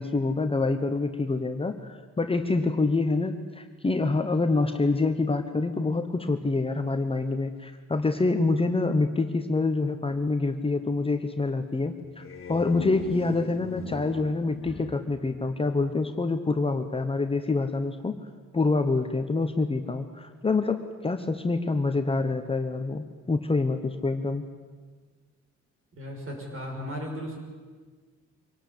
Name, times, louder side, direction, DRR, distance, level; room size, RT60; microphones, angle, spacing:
voice 1, 0.0-12.2 12.5-18.2 18.5-24.4, left 3 dB, 20° left, 6 dB, 1.1 m, -26 dB
sound 1, 12.0-16.2, left 6 dB, 45° left, 2.0 m, -40 dB
voice 2, 26.0-27.4, equal, 45° right, 1 dB, 6.1 m, -35 dB
25.0 x 18.0 x 8.6 m, 1.5 s
wide cardioid pair, 150°, 29 cm